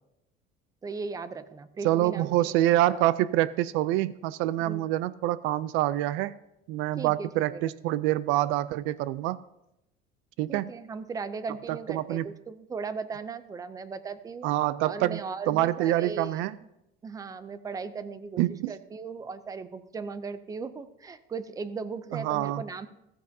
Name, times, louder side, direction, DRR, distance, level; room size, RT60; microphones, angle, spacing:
voice 1, 0.8-2.7 4.6-4.8 7.0-7.6 10.5-14.5 14.8-16.5 17.0-18.4 18.7-22.9, right 4 dB, 20° right, 13 dB, 0.4 m, -37 dB
voice 2, 1.8-6.3 6.7-9.4 10.4-10.7 11.7-12.3 14.4-15.2 15.5-16.5 18.4-18.7 22.1-22.6, right 14 dB, 85° right, 17 dB, 0.4 m, -26 dB
14.5 x 14.5 x 2.7 m, 0.86 s
cardioid pair, 175°, 20 cm